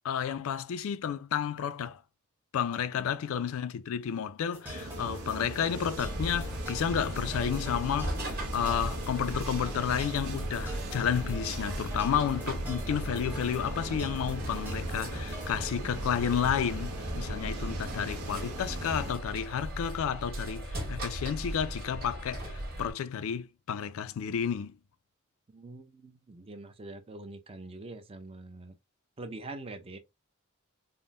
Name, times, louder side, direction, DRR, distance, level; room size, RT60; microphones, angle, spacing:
voice 1, 0.0-2.0 2.5-24.8, left 8 dB, 65° left, 0.3 m, -31 dB
sound 1, 4.5-15.7, right 1 dB, 10° right, 0.8 m, -45 dB
sound 2, 4.7-19.2, right 2 dB, 85° right, 0.7 m, -40 dB
sound 3, 6.0-22.9, right 1 dB, 45° right, 1.3 m, -38 dB
voice 2, 17.7-18.2 25.5-28.8 29.2-30.0, right 2 dB, 25° right, 0.5 m, -44 dB
3.5 x 2.1 x 2.5 m
head